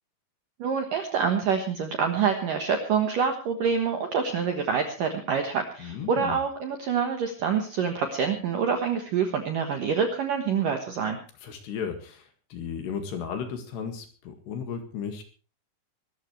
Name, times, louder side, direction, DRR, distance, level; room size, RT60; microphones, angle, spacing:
voice 1, 0.6-11.2, right 6 dB, 65° right, 5 dB, 2.2 m, -26 dB
voice 2, 5.8-6.4 11.4-15.2, left 7 dB, 65° left, 6 dB, 3.7 m, -35 dB
24.0 x 13.5 x 3.3 m, 0.37 s
omnidirectional pair, 5.8 m